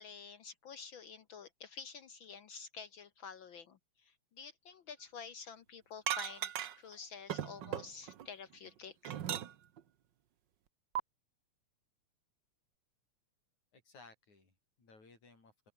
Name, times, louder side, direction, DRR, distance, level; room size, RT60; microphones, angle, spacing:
voice 1, 0.0-9.2, left 6 dB, 60° left, 1.3 m, -50 dB
sound 1, 6.1-6.9 7.3-8.3 8.7-9.8 10.9-11.0, right 10 dB, 60° right, 1.2 m, -38 dB
voice 2, 13.7-15.7, left 3 dB, 80° left, 9.0 m, -60 dB
open air
omnidirectional pair, 3.3 m